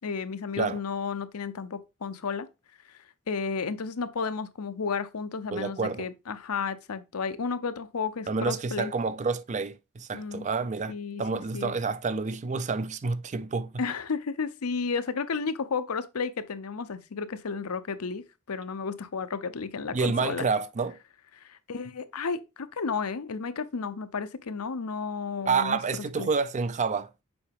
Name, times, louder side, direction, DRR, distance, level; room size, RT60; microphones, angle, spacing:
voice 1, 0.0-2.5 2.9-3.0 3.3-8.9 10.1-10.5 10.9-11.7 13.8-20.4 21.4-26.3, left 5 dB, 85° left, 0.7 m, -32 dB
voice 2, 5.5-6.1 8.3-10.9 11.2-13.7 19.9-21.0 25.5-27.1, right 4 dB, 35° right, 0.4 m, -28 dB
7.0 x 4.8 x 3.5 m
head